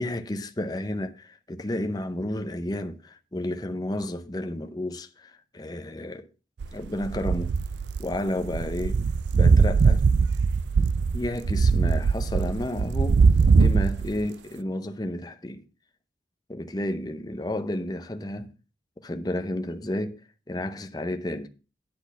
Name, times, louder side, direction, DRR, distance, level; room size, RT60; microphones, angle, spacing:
voice 1, 0.0-6.3 6.7-7.5 8.0-9.0 9.3-10.1 11.1-13.2 13.6-15.6 16.5-18.5 19.0-20.2 20.5-21.5, left 1 dB, 20° left, 0.7 m, -31 dB
sound 1, 6.6-14.2, right 5 dB, 75° right, 0.4 m, -21 dB
10.5 x 4.1 x 6.8 m
head